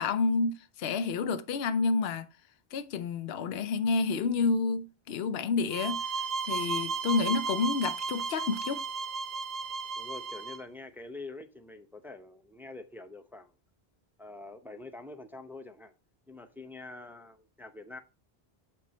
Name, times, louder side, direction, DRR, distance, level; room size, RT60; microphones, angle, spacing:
voice 1, 0.0-2.3 2.7-6.0 6.5-8.8, left 4 dB, 75° left, 0.9 m, -29 dB
sound 1, 5.7-10.6, right 4 dB, 45° right, 0.7 m, -34 dB
voice 2, 10.0-13.5 14.2-15.9 16.3-18.0, left 3 dB, ahead, 0.6 m, -46 dB
7.6 x 4.6 x 4.1 m
omnidirectional pair, 1.0 m